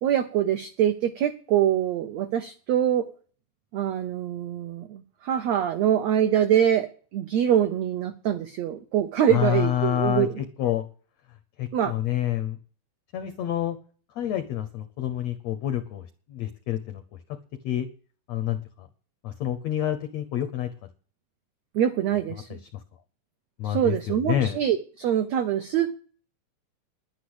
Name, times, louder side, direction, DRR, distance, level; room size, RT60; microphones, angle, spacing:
voice 1, 0.0-3.1 3.7-10.3 11.7-11.9 21.7-22.6 23.6-25.9, right 10 dB, 90° right, 8 dB, 1.5 m, -24 dB
voice 2, 9.3-10.9 11.3-12.6 13.1-13.8 14.1-17.0 17.3-17.4 17.6-17.9 18.3-18.9 19.2-20.7 22.3-22.8 23.6-24.6, left 11 dB, 85° left, 11 dB, 1.5 m, -28 dB
10.5 x 10.5 x 7.9 m, 0.43 s
omnidirectional pair, 4.2 m